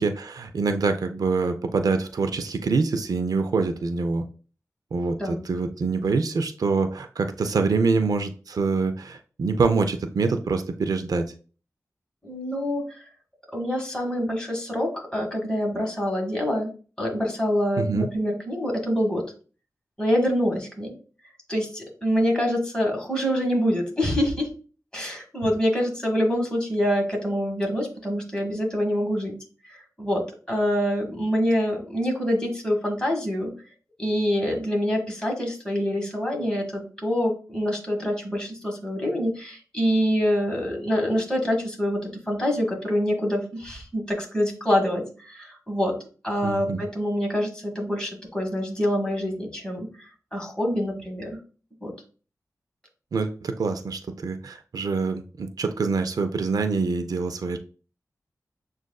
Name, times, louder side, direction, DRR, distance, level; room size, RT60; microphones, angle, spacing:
voice 1, 0.0-4.2 4.9-11.2 17.8-18.1 46.4-46.8 53.1-57.6, right 4 dB, 75° right, 7 dB, 0.4 m, -25 dB
voice 2, 12.2-13.0 13.5-16.7 17.0-19.2 20.0-20.9 21.5-24.5 24.9-29.3 29.6-33.5 34.0-45.9 46.2-51.4 51.8-51.9, equal, 15° left, 0 dB, 1.7 m, -26 dB
7.1 x 2.4 x 2.3 m, 0.38 s
wide cardioid pair, 60°, 6 cm